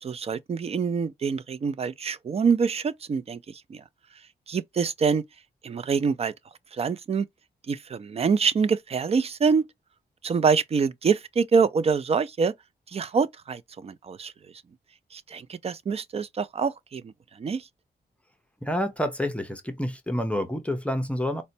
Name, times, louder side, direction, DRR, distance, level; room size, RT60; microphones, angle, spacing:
voice 1, 0.0-3.8 4.5-5.2 5.6-6.3 6.7-7.3 7.7-9.6 10.2-12.5 12.9-14.3 15.1-17.1 17.4-17.6, right 5 dB, 40° right, 0.4 m, -25 dB
voice 2, 18.6-21.4, equal, 5° left, 0.6 m, -28 dB
4.1 x 2.2 x 2.7 m
wide cardioid pair, 115°, 17 cm